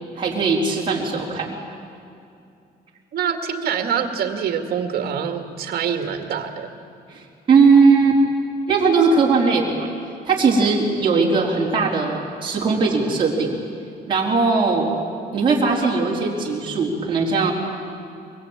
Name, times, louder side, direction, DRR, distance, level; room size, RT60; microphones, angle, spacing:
voice 1, 0.2-1.6 7.1-8.2 8.7-9.9 10.2-13.6 14.1-14.9 15.3-17.5, right 4 dB, 30° right, -4 dB, 4.0 m, -19 dB
voice 2, 3.1-6.7, right 7 dB, 65° right, 6 dB, 2.3 m, -25 dB
23.5 x 23.5 x 8.9 m, 2.5 s
cardioid pair, 180°, 17 cm